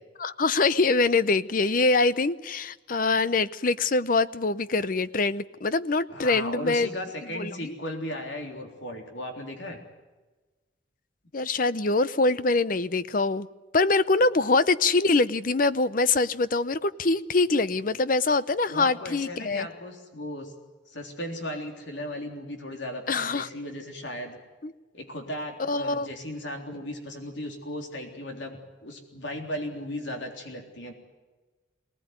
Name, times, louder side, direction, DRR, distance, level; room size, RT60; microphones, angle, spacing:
voice 1, 0.2-6.9 7.3-7.7 11.3-13.5 13.7-19.7 23.1-23.5 24.6-24.7 25.6-26.1, left 3 dB, 45° left, 0.7 m, -24 dB
voice 2, 6.1-9.8 18.7-20.5 20.9-24.4 24.9-30.9, left 1 dB, 70° left, 3.6 m, -36 dB
23.5 x 18.5 x 9.5 m
head